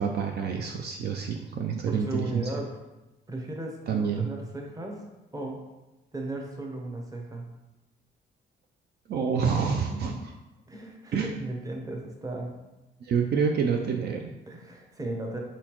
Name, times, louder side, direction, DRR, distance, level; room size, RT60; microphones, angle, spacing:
voice 1, 0.0-2.5 3.9-4.3 9.1-10.1 11.1-11.3 13.0-14.3, right 6 dB, 55° right, 2 dB, 0.4 m, -27 dB
voice 2, 1.9-2.7 3.3-5.0 5.3-5.6 6.1-7.4 9.9-10.1 10.7-12.5 14.5-15.4, right 2 dB, 20° right, 1 dB, 0.8 m, -36 dB
4.3 x 3.6 x 3.0 m, 1.0 s
cardioid pair, 90°, 20 cm